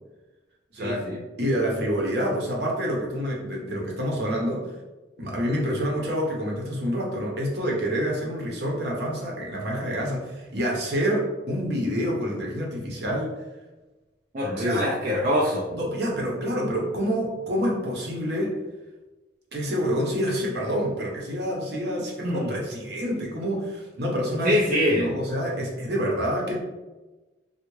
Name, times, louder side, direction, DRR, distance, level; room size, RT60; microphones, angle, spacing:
voice 1, 0.8-1.2 14.3-15.8 22.2-22.5 24.4-25.1, equal, 45° right, -5 dB, 0.4 m, -24 dB
voice 2, 1.4-4.7 5.2-13.3 14.6-14.8 15.8-18.5 19.5-24.6 24.9-26.6, equal, 65° right, -2 dB, 0.8 m, -27 dB
3.4 x 2.3 x 3.1 m, 1.1 s
head